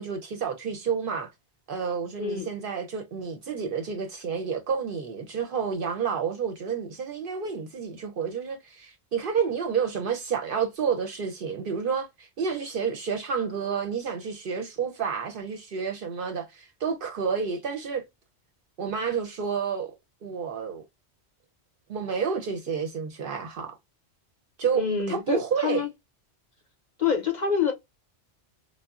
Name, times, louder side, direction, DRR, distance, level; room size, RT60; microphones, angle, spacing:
voice 1, 0.0-1.3 1.7-18.0 18.8-19.9 20.2-20.8 21.9-23.8 24.6-25.8, right 6 dB, 60° right, 0.7 m, -30 dB
voice 2, 2.2-2.5 24.7-25.9 27.0-27.7, left 6 dB, 50° left, 0.6 m, -26 dB
3.6 x 2.0 x 2.3 m
omnidirectional pair, 1.2 m